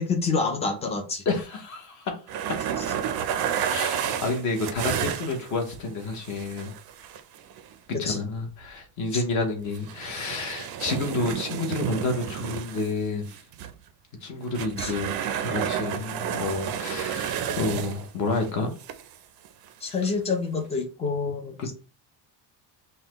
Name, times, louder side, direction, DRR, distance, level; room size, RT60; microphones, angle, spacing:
voice 1, 0.0-1.2 2.8-2.9 7.9-8.2 9.1-9.2 14.8-14.9 19.8-21.7, left 4 dB, 15° left, 0.3 m, -28 dB
voice 2, 1.3-2.4 3.6-6.7 8.0-13.2 14.2-15.1 15.4-18.7 21.6-21.7, left 3 dB, 40° left, 0.9 m, -29 dB
sound 1, 2.3-5.7 6.2-7.7 9.7-12.9 13.3-13.7 14.5-18.1 18.4-18.5 18.8-19.2 19.5-19.7 20.6-20.7, right 9 dB, 55° right, 0.5 m, -31 dB
5.4 x 2.2 x 2.9 m
cardioid pair, 180°, 46 cm